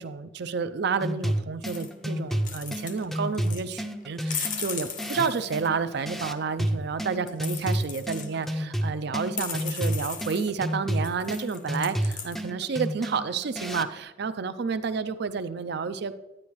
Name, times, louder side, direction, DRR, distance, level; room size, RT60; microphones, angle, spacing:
voice 1, 0.0-16.1, right 5 dB, 60° right, 11 dB, 0.5 m, -30 dB
sound 1, 1.0-14.0, equal, ahead, 0.5 m, -31 dB
sound 2, 1.6-1.9 2.3-3.0 3.3-3.6 4.2-6.0 7.3-8.4 9.0-9.1 9.3-10.5 11.0-12.4, left 7 dB, 45° left, 0.9 m, -37 dB
9.9 x 9.5 x 3.1 m, 0.96 s
head